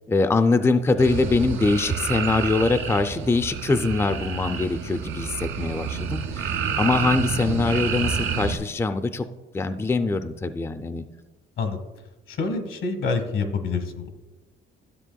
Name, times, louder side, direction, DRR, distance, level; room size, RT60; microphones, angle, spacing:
voice 1, 0.1-9.3 9.5-11.0, left 3 dB, 10° left, 9 dB, 0.4 m, -23 dB
sound 1, 1.0-8.6, right 6 dB, 80° right, 0.7 m, -29 dB
voice 2, 12.3-14.1, left 4 dB, 80° left, 8 dB, 1.2 m, -27 dB
12.5 x 7.2 x 2.3 m, 1.1 s
cardioid pair, 90°, 20 cm